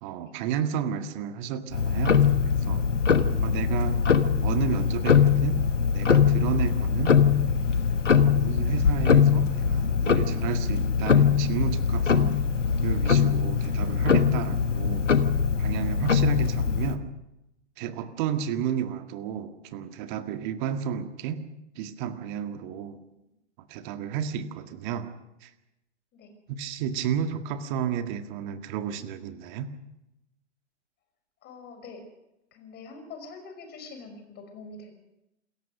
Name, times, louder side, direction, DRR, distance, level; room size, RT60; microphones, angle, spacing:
voice 1, 0.0-2.8 3.4-4.0 4.4-5.7 5.9-7.2 8.1-12.5 12.8-15.1 15.6-17.1 17.8-21.4 21.8-23.0 23.6-25.1 25.4-25.5 26.5-29.7, right 8 dB, 40° right, 8 dB, 1.8 m, -32 dB
Tick-tock, 1.7-17.0, left 6 dB, 80° left, 1.5 m, -22 dB
voice 2, 31.4-32.0 32.5-34.9, left 4 dB, 30° left, 6 dB, 5.6 m, -44 dB
28.0 x 14.5 x 6.5 m, 0.91 s
figure-of-eight pair, 105°, 36 cm